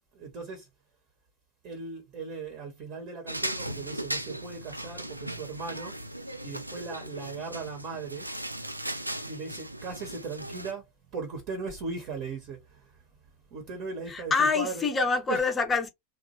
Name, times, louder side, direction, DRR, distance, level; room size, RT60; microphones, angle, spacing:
voice 1, 0.1-0.7 1.6-6.0 6.4-8.3 9.3-13.0 13.5-14.9 15.3-15.5, right 4 dB, 40° right, 0.9 m, -38 dB
sound 1, 3.3-10.7, right 1 dB, 85° right, 0.3 m, -37 dB
voice 2, 14.1-15.9, left 4 dB, 15° left, 0.6 m, -26 dB
2.9 x 2.2 x 2.9 m
figure-of-eight pair, 90°, 0 cm